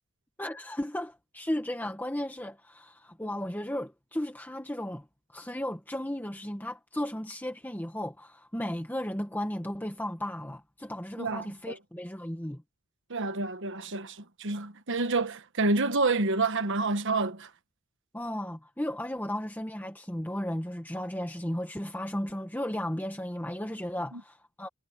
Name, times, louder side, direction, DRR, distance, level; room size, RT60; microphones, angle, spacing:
voice 1, 0.4-5.0 5.3-12.6 18.1-24.7, left 1 dB, 10° left, 1.6 m, -35 dB
voice 2, 11.2-11.8 13.1-17.5 24.1-24.2, right 3 dB, 55° right, 1.3 m, -28 dB
head